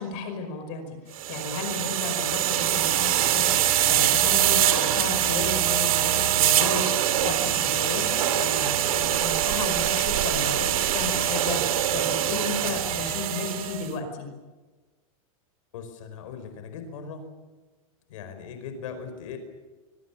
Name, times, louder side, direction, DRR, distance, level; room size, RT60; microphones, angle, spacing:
voice 1, 0.0-14.3, left 3 dB, 35° left, 6 dB, 5.2 m, -33 dB
sound 1, 1.2-13.9, right 11 dB, 75° right, 2.6 m, -24 dB
voice 2, 15.7-17.3 18.1-19.4, left 6 dB, 65° left, 8 dB, 4.7 m, -39 dB
25.0 x 23.0 x 7.3 m, 1.2 s
supercardioid pair, 180°, 18 cm